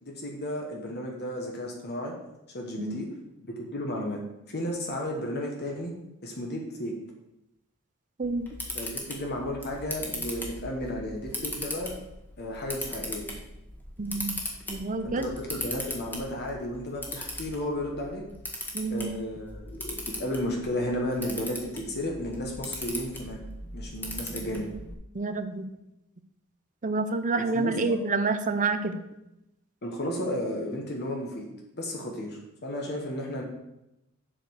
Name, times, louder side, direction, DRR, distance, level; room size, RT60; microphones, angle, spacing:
voice 1, 0.0-2.1 2.5-3.1 3.4-4.2 4.5-5.9 6.2-7.0 8.7-11.9 12.4-13.3 15.0-18.2 18.9-23.4 23.7-24.7 27.3-27.9 29.8-31.4 31.8-33.4, left 1 dB, 50° left, 0 dB, 1.4 m, -33 dB
Camera, 8.2-24.9, left 1 dB, 10° left, 1.4 m, -39 dB
voice 2, 14.0-14.4 14.7-15.3 18.7-19.1 25.1-25.7 26.8-28.9, right 3 dB, 35° right, 10 dB, 0.6 m, -28 dB
7.6 x 5.1 x 6.4 m, 0.90 s
head